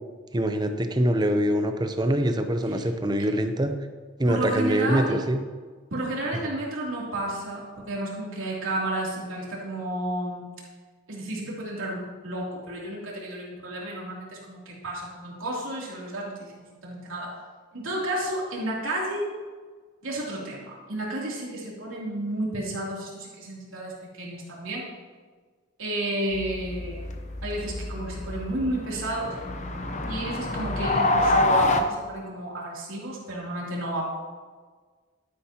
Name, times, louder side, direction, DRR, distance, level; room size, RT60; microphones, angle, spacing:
voice 1, 0.3-3.7 4.2-5.4, right 1 dB, 20° right, 7 dB, 0.6 m, -24 dB
voice 2, 4.2-5.2 5.9-10.5 11.1-17.3 17.7-19.3 20.0-24.9 25.8-27.0 27.4-29.3 30.0-34.0, right 1 dB, 80° right, -4 dB, 3.0 m, -32 dB
sound 1, 26.3-31.8, left 2 dB, 35° left, 0.7 m, -27 dB
12.0 x 9.9 x 2.9 m, 1.5 s
head